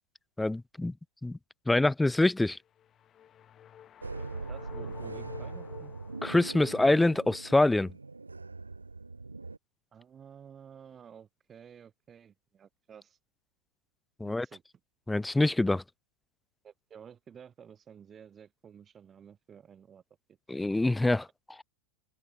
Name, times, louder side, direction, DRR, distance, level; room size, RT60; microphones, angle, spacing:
voice 1, 0.4-0.9 1.2-1.4 1.7-2.6 6.2-7.9 14.2-14.5 15.1-15.8 20.5-21.3, left 2 dB, 5° left, 0.3 m, -25 dB
sound 1, 2.6-7.0, left 10 dB, 25° left, 4.4 m, -51 dB
voice 2, 4.0-5.9 9.9-13.2 14.2-14.6 15.7-15.8 16.6-20.0 20.3-20.4, right 8 dB, 20° right, 1.4 m, -52 dB
sound 2, 4.0-9.6, right 3 dB, 80° right, 0.5 m, -41 dB
open air
figure-of-eight pair, 90°, 0 cm